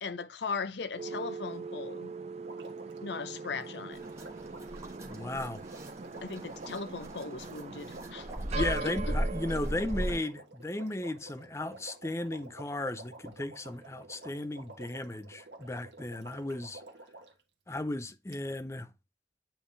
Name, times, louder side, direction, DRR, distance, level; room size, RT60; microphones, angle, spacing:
voice 1, 0.0-2.1 3.0-4.0 6.2-8.3 8.5-8.9, left 4 dB, 75° left, 0.7 m, -38 dB
sound 1, 1.0-10.2, right 4 dB, 35° right, 0.4 m, -41 dB
Water, 2.4-17.4 18.3-18.4, right 2 dB, 75° right, 1.4 m, -51 dB
sound 2, 3.9-10.1, equal, 15° right, 1.2 m, -37 dB
voice 2, 5.0-5.6 8.5-16.8 17.7-18.9, left 1 dB, 15° left, 0.5 m, -36 dB
8.7 x 3.4 x 3.2 m
head